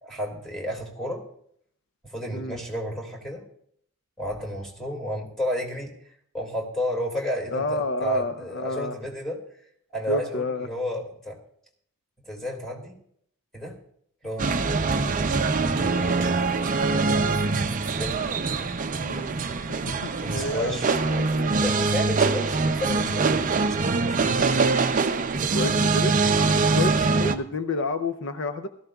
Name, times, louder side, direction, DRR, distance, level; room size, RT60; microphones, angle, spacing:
voice 1, 0.0-1.2 2.0-3.4 4.2-5.9 6.3-9.4 9.9-11.4 12.3-13.0 13.5-13.8 14.2-14.5 15.6-16.6 17.9-18.2 20.2-24.6, equal, ahead, 0 dB, 2.2 m, -32 dB
voice 2, 7.5-8.9 10.1-10.7 19.0-19.3 20.3-21.5 25.5-28.7, left 2 dB, 60° left, 9 dB, 0.6 m, -30 dB
sound 1, 14.4-27.3, right 3 dB, 35° right, 0.5 m, -23 dB
17.0 x 13.5 x 2.3 m, 0.65 s
head